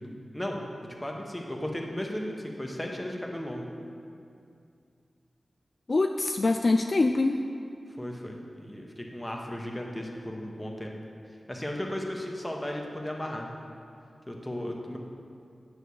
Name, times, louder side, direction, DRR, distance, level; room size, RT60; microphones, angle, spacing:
voice 1, 0.0-3.7 8.0-10.9 11.5-13.5 14.3-15.0, left 1 dB, 10° left, 0 dB, 1.1 m, -35 dB
voice 2, 5.9-7.4, left 3 dB, 45° left, 5 dB, 0.3 m, -24 dB
7.7 x 4.7 x 6.9 m, 2.5 s
wide cardioid pair, 75°, 0 cm